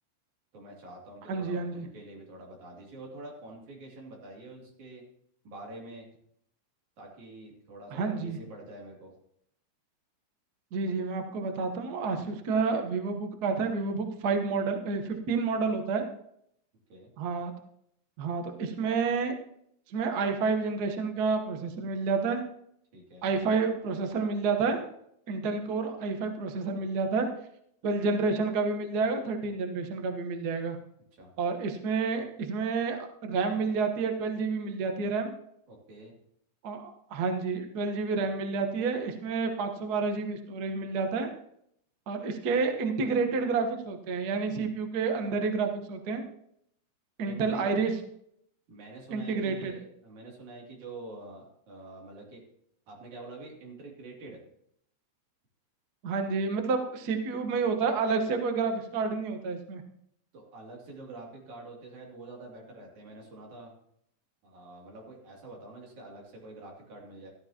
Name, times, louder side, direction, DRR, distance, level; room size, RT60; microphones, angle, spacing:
voice 1, 0.5-5.0 5.4-6.1 7.0-9.1 16.9-17.1 22.9-23.5 31.1-31.3 35.7-36.1 47.3-47.7 48.7-52.4 52.9-54.4 60.3-63.7 64.4-67.3, right 2 dB, 65° right, -2 dB, 4.0 m, -46 dB
voice 2, 1.3-1.9 7.9-8.4 10.7-16.1 17.2-17.5 18.2-19.3 19.9-22.4 23.2-24.8 25.3-27.3 27.8-30.8 31.4-35.3 36.6-41.3 42.1-46.2 47.2-47.9 49.1-49.7 56.0-59.8, right 4 dB, 90° right, 5 dB, 0.8 m, -29 dB
14.0 x 12.5 x 2.9 m, 0.72 s
omnidirectional pair, 3.6 m